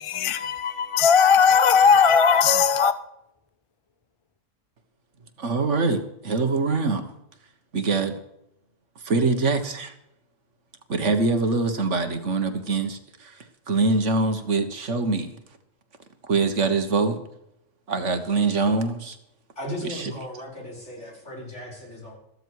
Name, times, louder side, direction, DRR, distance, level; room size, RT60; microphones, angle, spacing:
voice 1, 0.0-2.9, left 6 dB, 35° left, 0.5 m, -18 dB
voice 2, 5.4-7.0 7.7-8.1 9.0-9.9 10.9-13.4 13.7-15.4 16.2-17.2 17.9-19.2 19.8-20.1, right 3 dB, 70° right, 1.8 m, -24 dB
voice 3, 19.6-22.2, left 1 dB, 65° left, 5.3 m, -36 dB
14.5 x 13.5 x 4.8 m
omnidirectional pair, 1.3 m